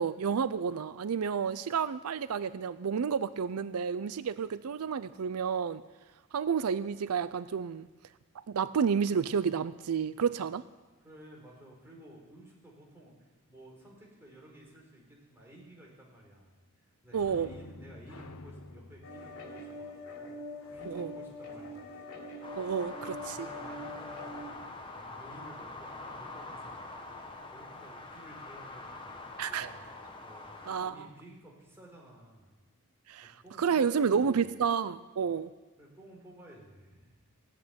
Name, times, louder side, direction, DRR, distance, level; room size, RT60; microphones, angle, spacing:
voice 1, 0.0-5.8 6.3-7.9 8.5-10.6 17.1-17.5 20.9-21.1 22.6-23.5 29.4-29.7 30.7-31.1 33.1-35.5, right 6 dB, 85° right, 15 dB, 0.5 m, -30 dB
voice 2, 11.0-13.2 13.5-20.4 20.7-21.8 23.0-24.7 24.9-27.2 27.5-29.8 30.2-32.5 33.4-34.4 35.8-37.2, right 1 dB, 10° right, -3 dB, 4.4 m, -54 dB
sound 1, 17.1-22.5 29.8-30.0 30.4-30.5, left 2 dB, 85° left, 0.9 m, -52 dB
sound 2, 19.0-24.5, left 1 dB, 65° left, 3.2 m, -44 dB
sound 3, 22.4-30.8, left 2 dB, 25° left, 1.4 m, -45 dB
16.0 x 8.7 x 9.4 m, 1.2 s
head